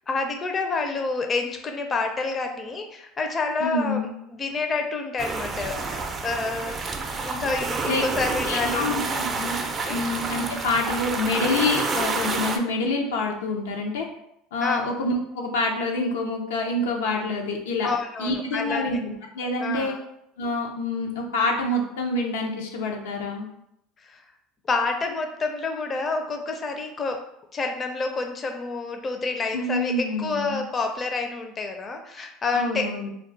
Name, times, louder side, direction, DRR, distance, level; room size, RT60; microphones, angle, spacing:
voice 1, 0.1-6.8 7.2-8.9 9.8-10.0 14.6-14.8 17.8-18.9 19.6-20.0 24.0-24.2 24.7-27.2 27.5-33.1, left 3 dB, 30° left, 4 dB, 0.4 m, -28 dB
voice 2, 3.6-4.1 7.8-8.0 8.5-9.0 9.4-9.6 9.9-14.1 14.5-17.9 18.2-20.0 20.4-23.5 29.5-30.6 32.5-33.1, left 2 dB, 90° left, 1 dB, 0.5 m, -27 dB
sound 1, 5.2-12.6, right 3 dB, 30° right, 0.4 m, -29 dB
2.3 x 2.2 x 3.8 m, 0.77 s
supercardioid pair, 95°, 0 cm